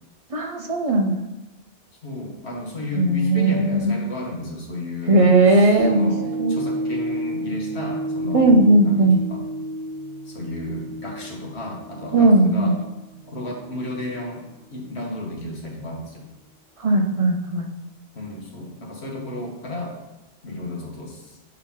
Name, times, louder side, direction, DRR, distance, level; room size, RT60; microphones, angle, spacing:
voice 1, 0.3-1.1 2.9-4.0 5.1-6.1 6.4-6.6 8.3-9.2 12.1-12.7 16.8-17.7, right 2 dB, 35° right, 3 dB, 0.7 m, -17 dB
voice 2, 2.0-6.2 6.5-9.4 10.3-12.7 13.3-14.4 14.7-16.2 18.1-20.0 20.4-21.4, left 2 dB, 70° left, -1 dB, 1.6 m, -33 dB
sound 1, 5.8-14.2 14.7-14.8, right 1 dB, 75° right, 0.9 m, -31 dB
6.6 x 5.8 x 3.7 m, 1.0 s
omnidirectional pair, 1.1 m